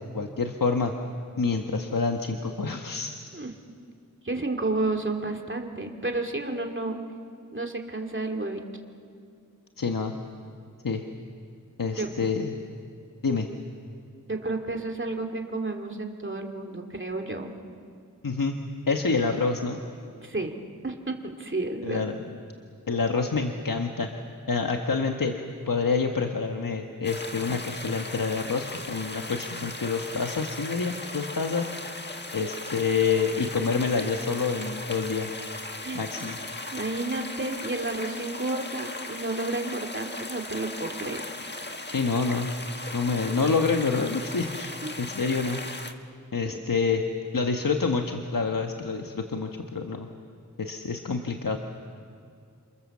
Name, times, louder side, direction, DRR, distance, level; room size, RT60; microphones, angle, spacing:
voice 1, 0.1-0.9 1.4-3.1 9.8-10.1 10.8-11.0 11.8-12.5 13.2-13.5 18.2-18.6 18.9-19.8 21.8-22.2 22.9-24.1 24.5-25.4 25.7-31.7 32.3-35.3 35.9-36.4 41.9-42.6 42.9-45.6 46.3-47.0 47.3-50.1 50.6-51.6, left 4 dB, 80° left, 3 dB, 1.4 m, -27 dB
voice 2, 4.2-7.0 7.5-8.6 12.0-12.1 14.3-17.5 20.1-20.6 20.8-22.1 35.8-36.0 36.7-41.2 44.8-44.9, right 2 dB, 35° right, 3 dB, 2.6 m, -31 dB
sound 1, 27.0-45.9, left 2 dB, 30° left, 1.5 m, -38 dB
29.0 x 27.0 x 7.3 m, 2.3 s
wide cardioid pair, 65°, 33 cm